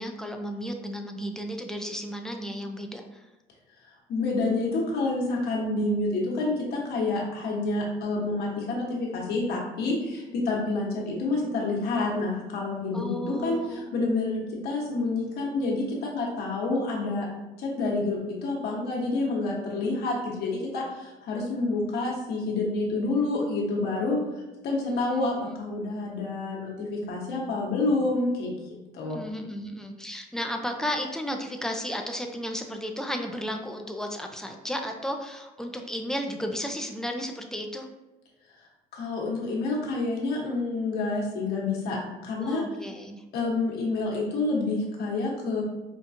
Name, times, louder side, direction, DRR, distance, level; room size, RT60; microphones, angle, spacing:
voice 1, 0.0-3.3 12.9-13.8 24.9-25.6 29.0-37.9 42.4-43.2, equal, 5° left, 3 dB, 0.4 m, -34 dB
voice 2, 4.1-17.3 17.6-24.2 24.6-29.2 38.9-42.0 42.2-42.6 43.3-45.6, left 3 dB, 70° left, -3 dB, 1.2 m, -28 dB
5.1 x 2.3 x 2.6 m, 1.0 s
cardioid pair, 110°, 17 cm